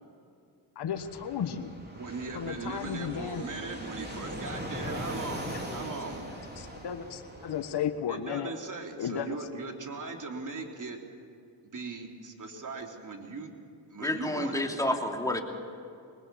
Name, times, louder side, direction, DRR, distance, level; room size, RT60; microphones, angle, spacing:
voice 1, 0.7-1.7 2.3-3.4 6.6-8.5 9.0-9.3, left 8 dB, 55° left, 7 dB, 1.4 m, -34 dB
Fixed-wing aircraft airplane, 0.9-7.8, equal, 20° right, 4.0 m, -40 dB
voice 2, 2.0-5.5 5.7-6.2 8.1-11.0 11.7-13.5 13.9-15.0, right 3 dB, 40° right, 2 dB, 3.5 m, -39 dB
voice 3, 14.0-15.4, left 1 dB, 5° left, 1 dB, 2.8 m, -29 dB
22.0 x 20.0 x 7.1 m, 2.4 s
cardioid pair, 70°, 47 cm